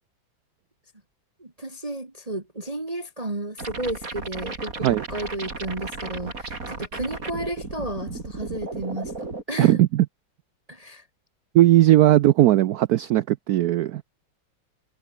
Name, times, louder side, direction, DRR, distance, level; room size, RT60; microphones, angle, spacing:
voice 1, 1.4-9.8 10.7-11.0, right 1 dB, 20° right, 2.1 m, -33 dB
sound 1, 3.6-9.4, right 3 dB, 40° right, 4.1 m, -35 dB
voice 2, 9.6-10.1 11.5-14.0, right 14 dB, 75° right, 0.9 m, -18 dB
omnidirectional pair, 2.2 m